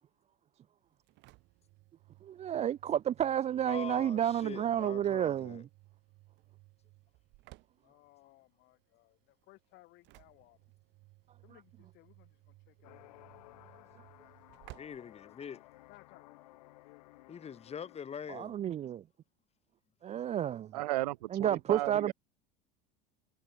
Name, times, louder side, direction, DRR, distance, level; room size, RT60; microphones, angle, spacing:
Engine / Slam, 0.8-16.0, right 21 dB, 60° right, 2.8 m, -60 dB
voice 1, 2.2-5.7 11.5-11.6 18.3-19.0 20.0-20.7 21.3-22.1, right 10 dB, 35° right, 0.5 m, -31 dB
voice 2, 3.7-5.6 14.8-15.6 17.3-18.6, left 7 dB, 30° left, 2.1 m, -44 dB
voice 3, 7.8-10.6 11.4-13.1 15.9-17.4, left 19 dB, 60° left, 6.1 m, -62 dB
sound 1, 12.8-18.0, left 18 dB, 80° left, 1.8 m, -57 dB
voice 4, 20.7-22.1, right 17 dB, 85° right, 0.7 m, -34 dB
hypercardioid pair, 85°, 20 cm